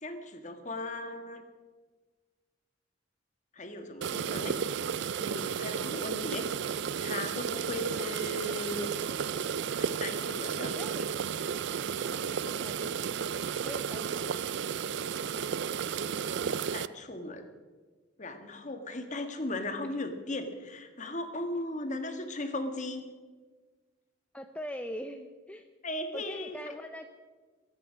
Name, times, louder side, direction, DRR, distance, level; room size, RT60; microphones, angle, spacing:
voice 1, 0.0-1.5 3.5-4.6 5.2-6.5 7.0-8.9 9.7-10.7 16.4-17.5 18.2-23.0 25.8-26.8, left 1 dB, 40° left, 7 dB, 1.5 m, -37 dB
sound 1, 4.0-16.9, right 7 dB, 60° right, 0.4 m, -33 dB
voice 2, 10.6-11.1 12.0-13.2 13.6-14.5 24.3-25.7 26.1-27.1, equal, 5° left, 6 dB, 0.6 m, -42 dB
23.0 x 9.1 x 6.2 m, 1.4 s
head